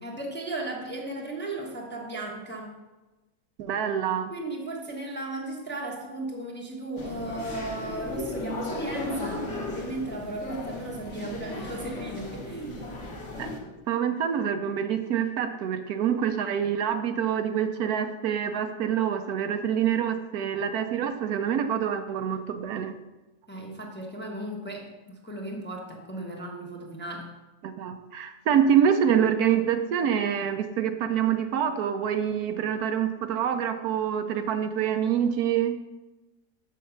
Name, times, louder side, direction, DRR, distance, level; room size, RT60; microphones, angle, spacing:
voice 1, 0.0-2.7 4.3-12.7 23.5-27.3, right 2 dB, 10° left, -1 dB, 0.8 m, -36 dB
voice 2, 3.6-4.3 13.4-13.5 13.9-22.9 27.6-35.8, right 8 dB, 75° right, 8 dB, 1.1 m, -26 dB
sound 1, 7.0-13.6, left 2 dB, 50° left, 1.6 m, -36 dB
6.7 x 6.3 x 5.7 m, 1.1 s
omnidirectional pair, 1.7 m